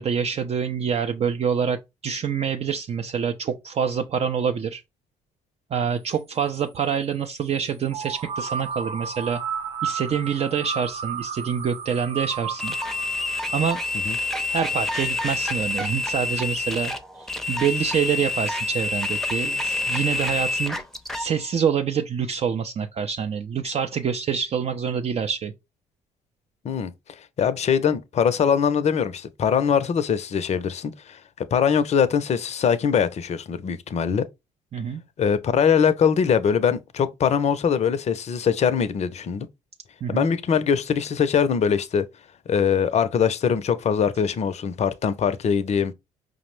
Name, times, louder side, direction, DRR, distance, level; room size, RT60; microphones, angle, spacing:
voice 1, 0.0-4.8 5.7-9.4 9.8-12.8 13.5-13.8 14.5-16.9 17.2-20.8 21.1-25.5 34.7-35.0 40.0-40.3, right 7 dB, 40° right, 0.4 m, -26 dB
sound 1, 7.9-14.7, right 6 dB, 85° right, 0.7 m, -33 dB
sound 2, 12.6-21.3, left 2 dB, ahead, 0.6 m, -27 dB
voice 2, 27.4-31.2 31.5-34.2 35.2-39.5 40.1-42.1 42.5-45.9, left 7 dB, 45° left, 0.5 m, -22 dB
4.9 x 2.0 x 3.1 m
hypercardioid pair, 55°, 16 cm